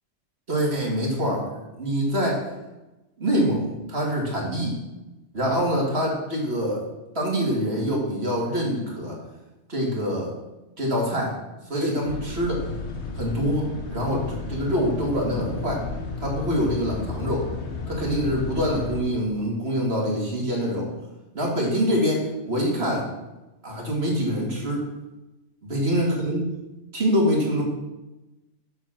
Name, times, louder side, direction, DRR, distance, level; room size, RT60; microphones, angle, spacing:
voice 1, 0.5-1.5 1.8-2.5 3.2-4.7 5.3-6.8 7.1-9.2 9.7-10.3 10.8-11.3 11.7-12.7 13.2-15.8 16.2-17.5 17.9-20.9 21.3-23.1 23.6-24.8 25.7-26.5 26.9-27.6, equal, 50° right, -2 dB, 2.8 m, -25 dB
sound 1, 12.1-19.0, left 4 dB, 60° left, 1.3 m, -33 dB
7.8 x 7.4 x 6.3 m, 1.0 s
omnidirectional pair, 1.3 m